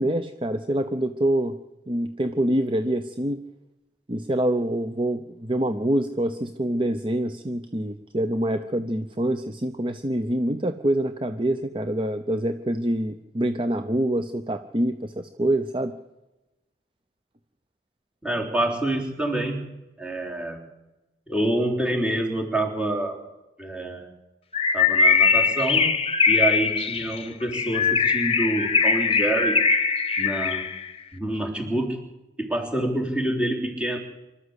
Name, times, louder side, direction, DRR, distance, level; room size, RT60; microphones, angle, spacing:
voice 1, 0.0-1.6 1.9-3.4 4.1-15.9, right 1 dB, 30° right, 9 dB, 0.8 m, -25 dB
voice 2, 18.2-19.7 20.0-20.6 21.3-23.2 23.6-24.1 24.7-26.0 26.3-29.6 30.2-30.7 31.1-32.0 32.4-34.0, right 1 dB, 5° right, 0 dB, 3.7 m, -27 dB
Bird, 24.5-30.8, left 5 dB, 35° left, 1.3 m, -21 dB
25.0 x 13.0 x 8.2 m, 1.0 s
head